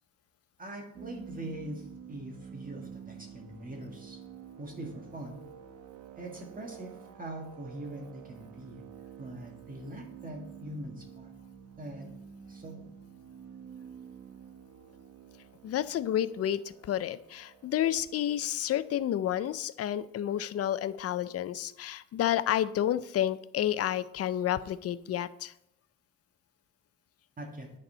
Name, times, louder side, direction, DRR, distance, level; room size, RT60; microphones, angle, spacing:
voice 1, 0.6-4.2 4.6-5.4 6.2-8.9 9.2-11.3 11.8-12.1 12.5-12.8 27.4-27.7, right 1 dB, 30° right, 1 dB, 1.7 m, -42 dB
sound 1, 0.9-19.7, right 7 dB, 65° right, 0.9 m, -49 dB
voice 2, 15.6-25.5, left 11 dB, 55° left, 16 dB, 0.5 m, -30 dB
9.5 x 4.2 x 5.5 m, 0.78 s
cardioid pair, 90°, 30 cm